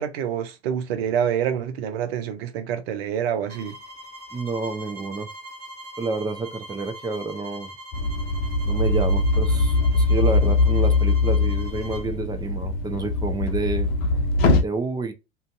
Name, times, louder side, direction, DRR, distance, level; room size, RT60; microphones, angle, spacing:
voice 1, 0.0-3.8, right 8 dB, 65° right, 0.7 m, -27 dB
sound 1, 3.5-12.1, right 1 dB, 30° right, 1.3 m, -42 dB
voice 2, 4.3-5.3 6.0-7.7 8.6-13.9 14.6-15.1, right 3 dB, 10° right, 0.6 m, -29 dB
sound 2, 7.9-14.6, left 2 dB, 55° left, 0.7 m, -21 dB
2.5 x 2.3 x 2.5 m
hypercardioid pair, 80°, 32 cm